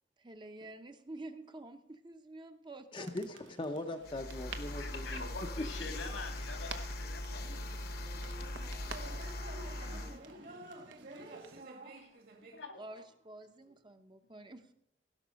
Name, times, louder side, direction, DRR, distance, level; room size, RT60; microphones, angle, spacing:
voice 1, 0.2-3.1 12.8-14.7, right 2 dB, 25° right, 7 dB, 0.7 m, -49 dB
voice 2, 2.9-5.2, left 1 dB, 25° left, 5 dB, 0.6 m, -40 dB
sound 1, 3.0-11.6, right 5 dB, 90° right, 1.0 m, -52 dB
sound 2, 4.0-10.2, left 1 dB, 55° left, 1.0 m, -41 dB
voice 3, 4.8-8.1 12.0-12.8, left 4 dB, 85° left, 4 dB, 2.4 m, -46 dB
sound 3, 7.3-12.6, right 2 dB, 55° right, 1.8 m, -50 dB
17.0 x 6.0 x 6.3 m, 0.77 s
head